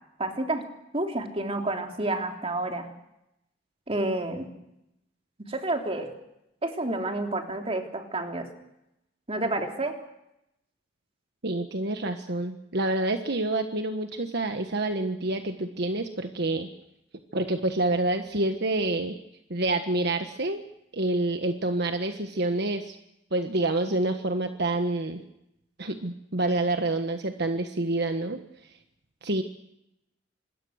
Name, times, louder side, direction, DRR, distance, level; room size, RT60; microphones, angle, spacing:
voice 1, 0.2-0.6 0.9-2.9 3.9-4.5 5.5-6.1 6.6-8.5 9.3-10.0, right 2 dB, 30° right, 3 dB, 3.3 m, -29 dB
voice 2, 11.4-16.7 17.3-19.2 19.5-20.6 20.9-23.0 23.3-25.2 25.8-28.4 29.2-29.4, right 2 dB, 60° right, 6 dB, 1.4 m, -27 dB
26.0 x 21.5 x 6.5 m, 0.86 s
head